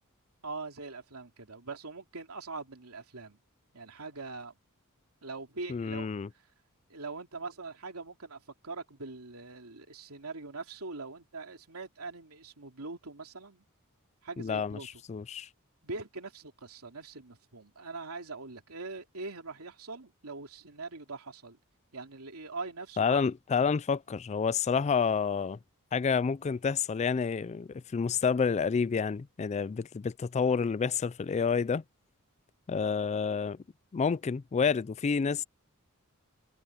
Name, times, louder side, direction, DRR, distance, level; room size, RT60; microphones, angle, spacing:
voice 1, 0.4-3.4 3.7-4.5 5.2-6.1 6.9-13.6 14.2-14.9 15.8-21.6 21.9-23.2, right 3 dB, 80° right, 3.0 m, -42 dB
voice 2, 5.7-6.3 14.4-15.5 23.0-25.6 25.9-31.8 32.7-33.6 33.9-35.4, left 6 dB, 30° left, 0.3 m, -29 dB
head